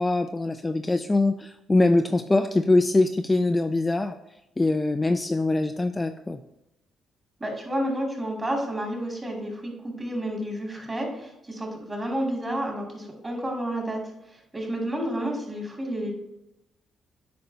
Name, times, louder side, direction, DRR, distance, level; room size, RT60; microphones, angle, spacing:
voice 1, 0.0-4.2 4.6-6.4, left 2 dB, 20° left, 6 dB, 0.4 m, -23 dB
voice 2, 7.4-14.0 14.3-16.1, right 1 dB, 25° right, 0 dB, 2.4 m, -30 dB
8.7 x 5.2 x 2.7 m, 0.89 s
cardioid pair, 90°, 0 cm